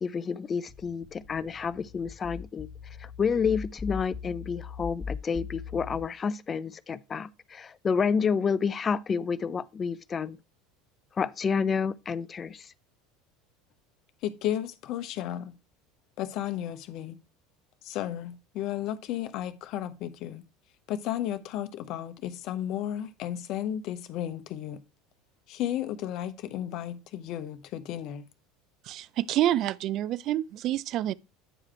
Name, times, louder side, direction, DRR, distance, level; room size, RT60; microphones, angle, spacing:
voice 1, 0.0-2.7 3.0-10.4 11.2-12.7, left 6 dB, 30° left, 0.4 m, -29 dB
sound 1, 0.7-6.0, left 6 dB, 10° left, 1.3 m, -40 dB
voice 2, 14.2-15.5 16.2-17.2 17.8-20.4 20.9-24.8 25.5-28.3, left 11 dB, 55° left, 0.8 m, -33 dB
voice 3, 28.9-31.1, right 13 dB, 50° right, 0.3 m, -28 dB
8.9 x 4.9 x 4.4 m
hypercardioid pair, 75°, 0 cm